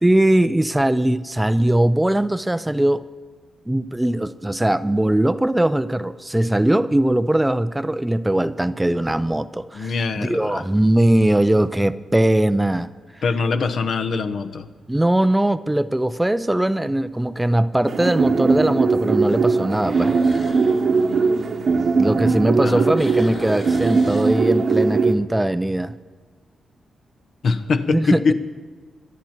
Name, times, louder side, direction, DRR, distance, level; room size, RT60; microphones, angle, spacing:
voice 1, 0.0-3.0 3.7-12.9 14.9-20.1 22.0-25.9 27.9-28.3, right 1 dB, 10° right, 13 dB, 0.4 m, -20 dB
sound 1, 6.0-6.7 7.4-7.5 12.7-13.2 13.6-13.7 14.3-14.4 14.7-14.8 16.3-16.4 19.7-22.2 22.6-24.9, left 2 dB, 50° left, 3.2 m, -40 dB
voice 2, 9.7-10.6 13.2-14.7 22.2-22.9 27.4-28.3, left 4 dB, 65° left, 10 dB, 0.9 m, -23 dB
sound 2, 17.9-25.1, right 4 dB, 55° right, 1.0 m, -20 dB
24.5 x 9.4 x 4.5 m, 1.4 s
cardioid pair, 100°, 0 cm